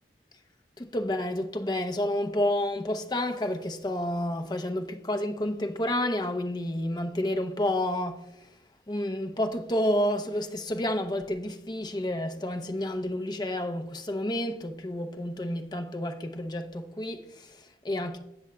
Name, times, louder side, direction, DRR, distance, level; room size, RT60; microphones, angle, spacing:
voice 1, 0.8-8.5 8.9-18.2, left 1 dB, 25° left, 0.7 m, -30 dB
16.5 x 6.1 x 2.3 m
head